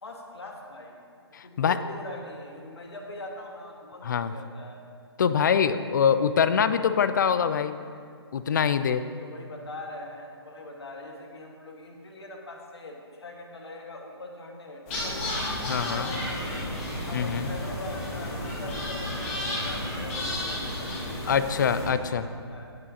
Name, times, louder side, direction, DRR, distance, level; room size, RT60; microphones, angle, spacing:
voice 1, 0.0-1.0 1.4-4.8 9.2-15.4 15.9-16.6 17.1-22.7, left 2 dB, 70° left, 1 dB, 1.6 m, -42 dB
voice 2, 1.3-1.8 4.0-4.3 5.2-7.8 8.3-9.0 15.7-16.1 17.1-17.5 21.3-22.2, left 7 dB, 45° left, 12 dB, 0.4 m, -24 dB
sound 1, 14.9-21.9, left 1 dB, 30° left, 2.3 m, -32 dB
17.5 x 6.2 x 2.8 m, 2.2 s
figure-of-eight pair, 140°, 14 cm